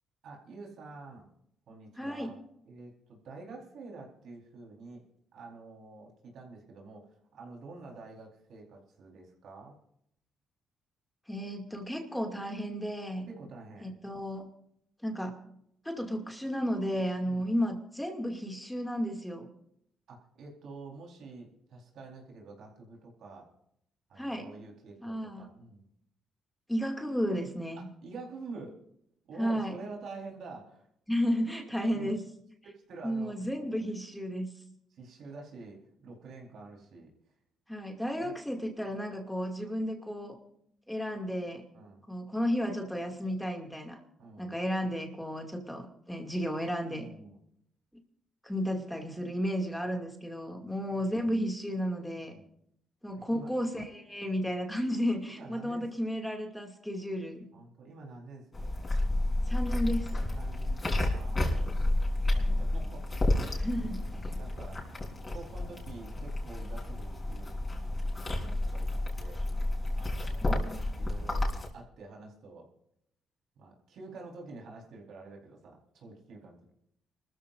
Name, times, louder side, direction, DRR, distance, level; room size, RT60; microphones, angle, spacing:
voice 1, 0.2-1.3 1.7-2.4 2.7-5.0 5.3-7.1 7.3-9.7 13.3-13.9 17.2-17.4 20.1-23.5 24.1-25.9 27.8-28.7 29.2-30.8 31.9-32.1 32.9-33.3 33.6-33.9 34.9-37.1 38.2-38.3 41.7-42.0 44.2-44.6 46.9-47.4 50.5-50.7 52.3-52.5 53.1-53.5 55.4-55.9 57.5-58.7 60.3-61.9 62.3-63.0 63.3-64.8 65.3-67.5 68.3-69.5 69.9-70.6 71.0-71.5 71.7-72.7 73.6-76.7, right 3 dB, 70° right, 0 dB, 4.4 m, -48 dB
voice 2, 2.0-2.3 11.3-13.3 13.8-14.5 15.0-15.4 15.8-19.5 24.2-24.5 25.0-25.5 26.7-27.9 29.4-29.8 31.1-32.2 33.0-34.5 37.7-40.4 40.9-41.7 42.1-44.0 44.4-47.1 48.4-52.4 53.0-57.5 59.5-60.1 63.6-64.0 70.4-70.9, equal, 5° left, 2 dB, 2.5 m, -33 dB
sound 1, 58.5-71.7, left 1 dB, 25° left, 4.4 m, -31 dB
29.5 x 14.0 x 2.6 m, 0.73 s
cardioid pair, 90°, 0 cm